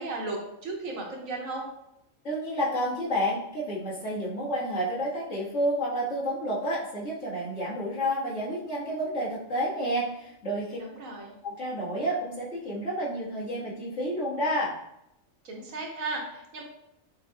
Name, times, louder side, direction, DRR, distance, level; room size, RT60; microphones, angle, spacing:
voice 1, 0.0-1.7 10.8-11.3 15.4-16.6, right 3 dB, 80° right, -1 dB, 1.4 m, -35 dB
voice 2, 2.2-10.8 11.4-14.8, equal, 65° left, -8 dB, 1.9 m, -30 dB
6.2 x 2.9 x 2.3 m, 0.80 s
omnidirectional pair, 1.4 m